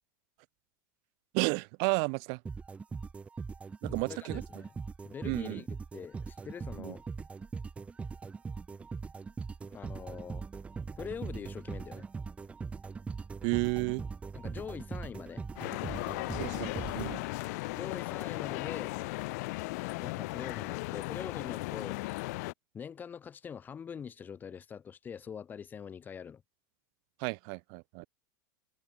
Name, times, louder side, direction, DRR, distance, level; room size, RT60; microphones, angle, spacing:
voice 1, 1.3-2.4 3.8-4.4 5.2-5.6 6.8-6.9 13.4-14.0 16.4-17.3 27.2-28.1, right 40 dB or more, 45° right, 1.3 m, -32 dB
sound 1, 2.5-17.7, right 5 dB, 10° right, 3.2 m, -41 dB
voice 2, 4.3-4.7 5.0-5.7 5.9-7.0 9.7-10.4 11.0-12.1 14.3-15.4 17.7-19.0 20.0-22.0 22.7-26.4, left 7 dB, 15° left, 5.4 m, -43 dB
sound 2, 15.5-22.5, left 24 dB, 55° left, 1.0 m, -36 dB
supercardioid pair, 160°, 11 cm